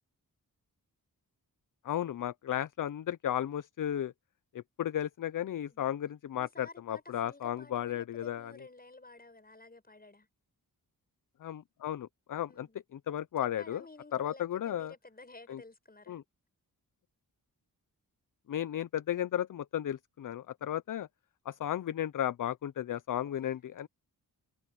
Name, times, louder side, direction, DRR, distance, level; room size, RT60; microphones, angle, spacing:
voice 1, 1.8-4.1 4.5-8.5 11.4-13.8 14.1-14.9 15.5-15.6 16.1-16.2 18.5-21.1 21.5-23.9, left 11 dB, 55° left, 0.5 m, -34 dB
voice 2, 6.4-10.3 12.5-12.8 13.4-16.2 23.2-23.6, left 2 dB, 25° left, 6.5 m, -53 dB
wide cardioid pair, 160°, 37 cm